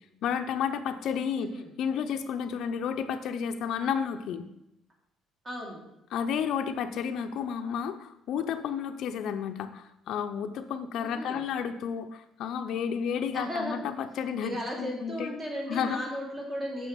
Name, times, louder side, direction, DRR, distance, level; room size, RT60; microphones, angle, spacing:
voice 1, 0.2-4.5 6.1-15.3 15.7-16.0, left 7 dB, 60° left, 7 dB, 0.5 m, -31 dB
voice 2, 1.4-1.7 5.4-5.8 11.0-11.4 13.3-13.9 14.2-16.9, equal, 25° right, 0 dB, 1.9 m, -36 dB
6.2 x 6.1 x 5.1 m, 0.87 s
cardioid pair, 145°, 0 cm